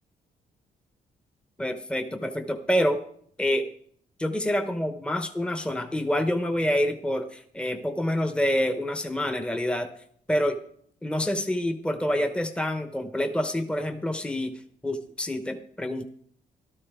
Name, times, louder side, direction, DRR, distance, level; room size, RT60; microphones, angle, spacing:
voice 1, 1.6-3.0 3.4-3.7 4.2-9.9 10.3-10.6 11.0-16.0, equal, 5° left, 7 dB, 0.9 m, -27 dB
13.0 x 12.5 x 3.6 m, 0.62 s
cardioid pair, 110°, 16 cm